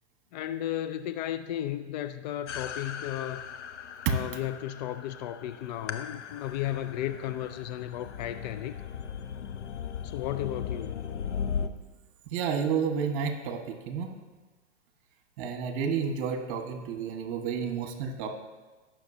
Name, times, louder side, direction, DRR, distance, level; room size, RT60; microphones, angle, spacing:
voice 1, 0.3-3.5 4.1-8.8 10.0-11.1, left 12 dB, 40° left, 10 dB, 0.4 m, -34 dB
sound 1, 2.5-11.7, left 7 dB, 80° left, 0.7 m, -38 dB
voice 2, 12.3-14.1 15.4-18.3, right 6 dB, 45° right, 4 dB, 1.5 m, -30 dB
19.0 x 6.4 x 2.8 m, 1.3 s
hypercardioid pair, 110°, 35 cm